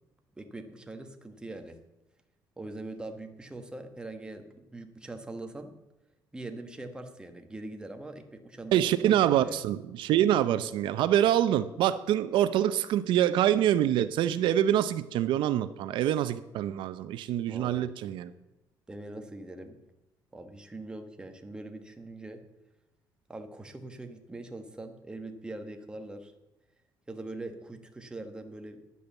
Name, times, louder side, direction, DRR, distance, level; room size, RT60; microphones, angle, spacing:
voice 1, 0.4-1.8 2.6-5.8 6.3-9.6 17.5-17.9 18.9-19.8 20.3-22.4 23.3-26.3 27.1-28.8, right 2 dB, 10° right, 5 dB, 1.3 m, -42 dB
voice 2, 8.7-18.3, right 11 dB, 80° right, 12 dB, 0.6 m, -25 dB
10.5 x 8.5 x 7.0 m, 0.99 s
cardioid pair, 135°, 8 cm